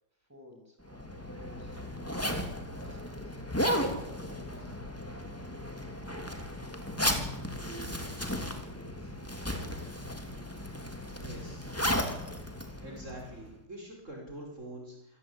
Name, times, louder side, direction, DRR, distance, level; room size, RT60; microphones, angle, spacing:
voice 1, 0.2-2.2 2.7-3.4 3.8-4.8, left 1 dB, 10° right, 2 dB, 7.0 m, -55 dB
Zipper (clothing), 0.9-13.5, left 1 dB, 10° left, 3.1 m, -35 dB
voice 2, 11.2-11.7 12.8-15.2, right 1 dB, 45° right, 0 dB, 5.7 m, -45 dB
27.0 x 18.0 x 8.8 m, 0.88 s
omnidirectional pair, 1.8 m